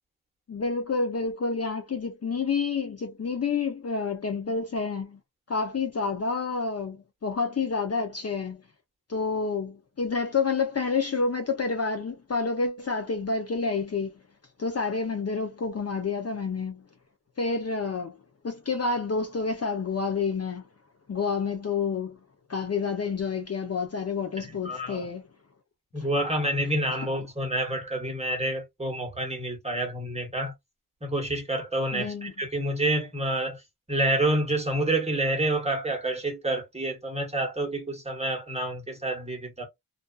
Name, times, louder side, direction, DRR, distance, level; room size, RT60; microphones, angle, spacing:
voice 1, 0.5-5.2 5.5-8.6 9.1-14.1 14.6-16.8 17.4-18.2 18.4-20.6 21.1-22.2 22.5-25.2 26.0-26.1 31.9-32.3, left 4 dB, 40° left, 0.6 m, -29 dB
voice 2, 24.4-25.1 25.9-30.5 31.0-33.6 33.9-39.6, right 1 dB, 15° right, 1.2 m, -28 dB
2.5 x 2.3 x 2.3 m
wide cardioid pair, 65°, 37 cm